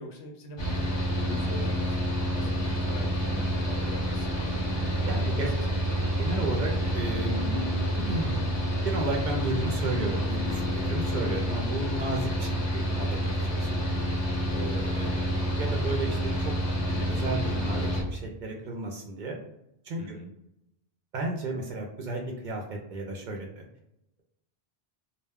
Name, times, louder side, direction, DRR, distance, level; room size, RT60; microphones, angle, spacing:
voice 1, 0.0-2.0 2.3-4.6 5.0-5.4 15.0-15.1 20.0-20.3, left 2 dB, 85° left, 2 dB, 0.9 m, -42 dB
Mechanical fan, 0.6-18.0, equal, 30° left, 0.7 m, -28 dB
voice 2, 5.0-5.5 6.2-7.6 8.1-8.4 8.8-13.9 14.5-16.5 16.9-19.4 19.8-20.2 21.1-23.7, right 2 dB, 60° right, 0 dB, 0.6 m, -33 dB
sound 1, 6.7-10.4, left 3 dB, 65° left, 0.7 m, -43 dB
2.2 x 2.1 x 3.4 m, 0.84 s
omnidirectional pair, 1.1 m